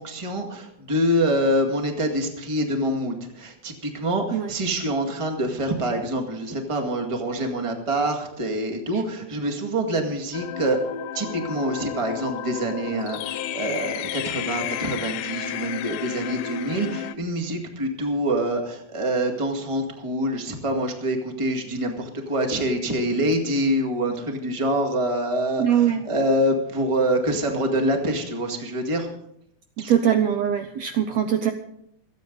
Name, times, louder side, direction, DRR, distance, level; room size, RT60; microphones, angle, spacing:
voice 1, 0.0-10.8 11.1-29.1 29.8-29.9, right 1 dB, 15° right, 3 dB, 1.3 m, -25 dB
sound 1, 10.3-17.2, left 11 dB, 85° left, 2.2 m, -32 dB
voice 2, 25.6-26.0 29.9-31.5, right 9 dB, 70° right, 7 dB, 1.7 m, -21 dB
27.0 x 9.2 x 4.0 m, 0.74 s
omnidirectional pair, 3.7 m